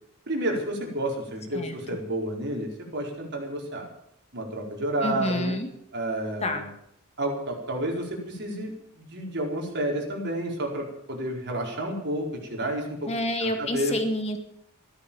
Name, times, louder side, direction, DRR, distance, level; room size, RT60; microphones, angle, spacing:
voice 1, 0.3-3.9 4.3-5.5 5.9-6.7 7.2-13.1 13.4-14.0, right 1 dB, 55° right, 0 dB, 4.7 m, -30 dB
voice 2, 5.0-5.7 6.4-6.6 13.1-14.4, left 1 dB, 30° left, 6 dB, 2.0 m, -28 dB
14.5 x 13.0 x 7.1 m, 0.73 s
head